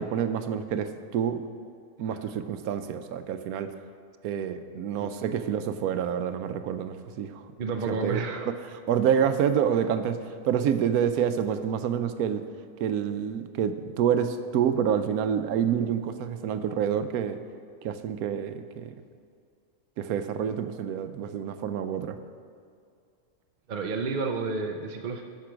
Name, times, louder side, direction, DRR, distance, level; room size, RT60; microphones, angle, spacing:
voice 1, 0.0-1.4 2.0-3.7 4.2-7.4 7.9-12.4 12.8-17.4 17.8-18.9 20.0-22.2, right 8 dB, 85° right, 10 dB, 1.1 m, -28 dB
voice 2, 7.6-8.5 23.7-25.2, right 4 dB, 50° right, 4 dB, 0.6 m, -30 dB
10.5 x 6.7 x 5.0 m, 2.3 s
omnidirectional pair, 1.5 m